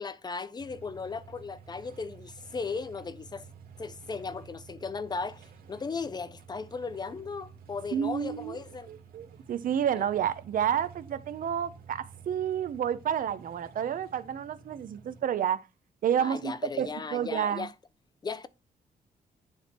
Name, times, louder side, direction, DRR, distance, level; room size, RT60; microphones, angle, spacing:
voice 1, 0.0-3.5 3.8-5.4 5.7-8.9 10.0-10.1 16.2-17.7 18.2-18.5, left 4 dB, 25° left, 0.6 m, -36 dB
sound 1, 0.6-15.2, right 6 dB, 80° right, 2.4 m, -51 dB
voice 2, 7.9-15.6 16.0-17.7, right 9 dB, 65° right, 0.8 m, -30 dB
10.0 x 3.6 x 4.4 m
cardioid pair, 120°, 15 cm